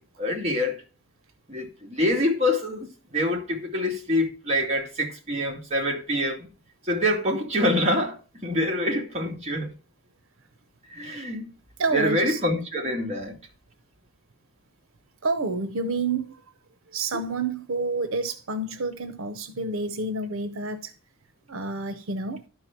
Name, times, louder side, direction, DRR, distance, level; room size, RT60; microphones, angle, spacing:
voice 1, 0.2-0.8 1.5-6.5 6.8-9.7 10.9-11.5 11.9-13.4 17.1-17.2, left 1 dB, 30° right, 2.2 m, -26 dB
voice 2, 11.8-12.4 15.2-16.4 16.9-20.9 21.5-22.4, right 3 dB, 75° right, 0.8 m, -29 dB
12.0 x 4.8 x 5.9 m
head